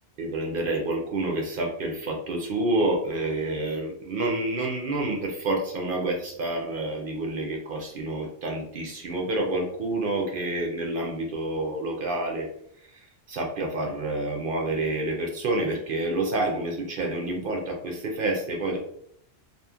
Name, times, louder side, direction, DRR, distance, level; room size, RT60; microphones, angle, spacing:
voice 1, 0.2-12.5 12.8-18.8, right 2 dB, 60° right, 0 dB, 0.7 m, -28 dB
2.9 x 2.3 x 2.3 m, 0.70 s
omnidirectional pair, 1.1 m